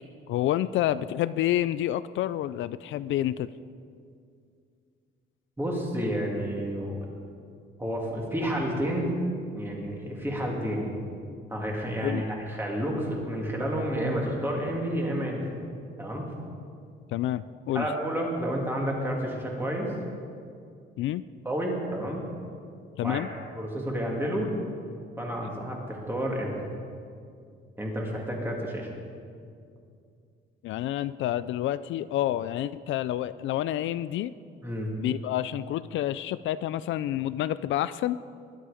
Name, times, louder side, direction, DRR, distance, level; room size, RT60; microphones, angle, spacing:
voice 1, 0.3-3.5 12.0-12.3 17.1-17.9 21.0-21.2 23.0-23.3 30.6-34.3 35.0-38.2, left 13 dB, 70° left, 15 dB, 0.4 m, -28 dB
voice 2, 5.6-7.0 7.8-9.1 9.5-10.9 11.5-15.5 16.0-16.3 17.7-19.9 21.4-22.2 23.0-23.2 23.5-24.5 25.2-26.5 27.8-28.9 34.6-34.9, equal, 10° right, -2 dB, 2.5 m, -30 dB
21.0 x 12.0 x 5.0 m, 2.3 s
cardioid pair, 175°, 21 cm